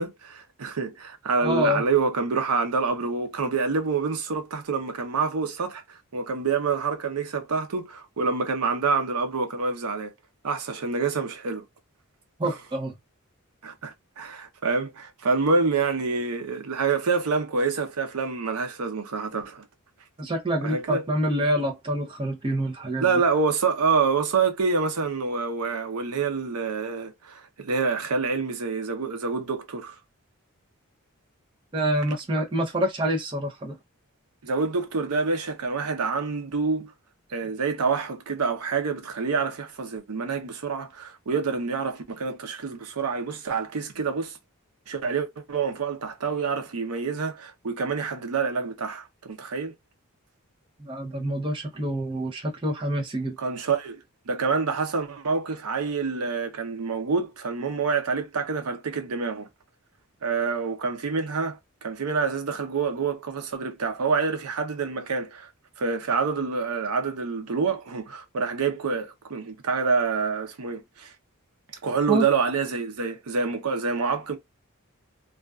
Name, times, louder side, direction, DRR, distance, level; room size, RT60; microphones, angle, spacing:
voice 1, 0.0-10.1 10.4-11.6 13.6-19.6 20.6-21.0 23.0-30.0 34.4-36.9 37.3-44.4 44.9-49.7 53.4-54.0 54.3-59.5 60.2-65.5 65.8-71.1 71.8-74.4, right 4 dB, 80° right, 0.6 m, -27 dB
voice 2, 1.4-1.8 12.4-12.9 20.2-23.2 31.7-33.8 50.8-53.3 72.1-72.2, right 1 dB, 20° right, 0.6 m, -26 dB
2.5 x 2.3 x 2.3 m
head